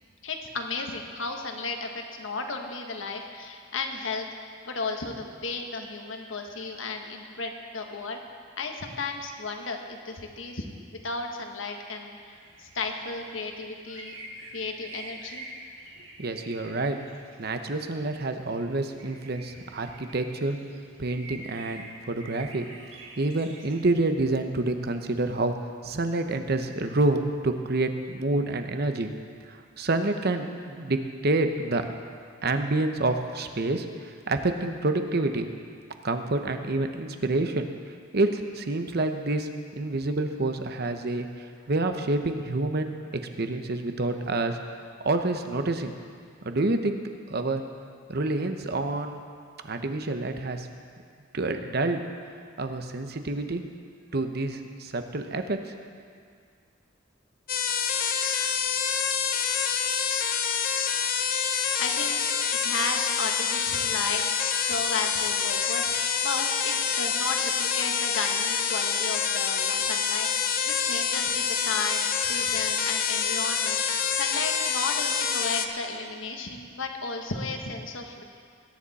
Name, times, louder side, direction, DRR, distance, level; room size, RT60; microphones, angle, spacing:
voice 1, 0.2-4.3 4.6-8.2 8.6-10.7 10.9-14.1 14.5-15.5 61.8-62.2 62.6-65.9 66.2-78.2, left 3 dB, 80° left, 3 dB, 1.4 m, -34 dB
sound 1, 12.3-23.8, right 2 dB, 75° right, 1.8 m, -47 dB
voice 2, 16.2-17.0 17.4-20.6 21.0-22.7 23.2-25.6 25.8-29.1 29.5-31.9 32.4-35.5 36.0-37.7 38.1-44.6 45.0-45.9 46.4-47.0 47.3-47.6 48.1-49.2 49.6-50.7 51.3-52.0 52.6-53.6 54.1-55.8, right 2 dB, 55° right, 7 dB, 0.9 m, -28 dB
sound 2, 57.5-75.7, left 7 dB, 45° left, 0.8 m, -27 dB
20.5 x 10.0 x 4.2 m, 2.2 s
head